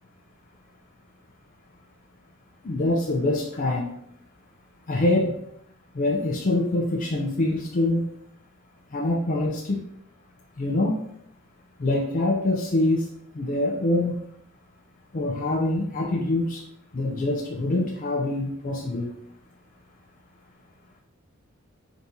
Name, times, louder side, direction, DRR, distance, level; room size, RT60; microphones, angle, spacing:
voice 1, 2.6-3.9 4.9-5.4 5.9-8.1 8.9-9.8 10.6-11.0 11.8-13.0 13.4-14.1 15.1-16.6 16.9-19.1, left 2 dB, 40° left, -2 dB, 0.5 m, -24 dB
4.2 x 3.5 x 2.7 m, 0.73 s
head